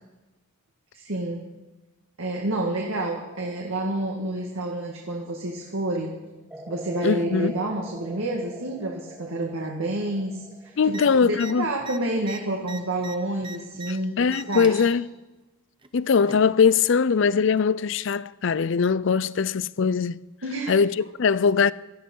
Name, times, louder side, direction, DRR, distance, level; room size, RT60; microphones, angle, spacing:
voice 1, 0.9-1.4 2.2-6.1 6.7-14.8 20.4-20.8, right 1 dB, 75° right, 2.0 m, -29 dB
sound 1, 4.3-5.5 6.5-10.8, right 1 dB, 5° right, 1.8 m, -46 dB
voice 2, 7.0-7.5 10.8-11.7 14.2-15.0 15.9-20.2 20.7-21.7, left 6 dB, 60° left, 0.4 m, -21 dB
sound 2, 10.9-11.1 11.3-11.5 11.8-13.9 14.3-14.8 15.8-16.5 17.5-17.6, right 3 dB, 25° right, 0.9 m, -40 dB
18.0 x 13.0 x 5.5 m
head